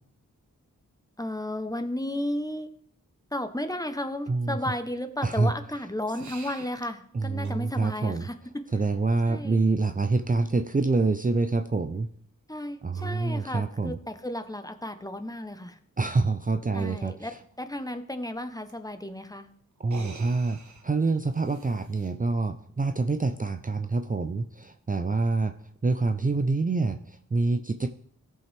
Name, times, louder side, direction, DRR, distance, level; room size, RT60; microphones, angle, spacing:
voice 1, 1.2-2.7 3.3-8.7 9.3-9.6 12.5-15.8 16.7-19.5, left 1 dB, 10° left, 9 dB, 1.0 m, -33 dB
voice 2, 4.3-4.6 5.2-5.5 7.1-8.3 8.7-12.1 12.8-14.0 16.0-17.4 19.8-25.6 25.8-27.9, right 3 dB, 25° right, 7 dB, 0.6 m, -26 dB
sound 1, 6.1-6.8 7.4-7.6 9.7-9.8 12.9-13.2 14.6-14.7 15.1-15.2 15.5-15.6 18.7-18.8 19.8-22.1, right 3 dB, 60° right, 1.2 m, -46 dB
14.5 x 5.5 x 3.5 m, 0.66 s
cardioid pair, 45°, 33 cm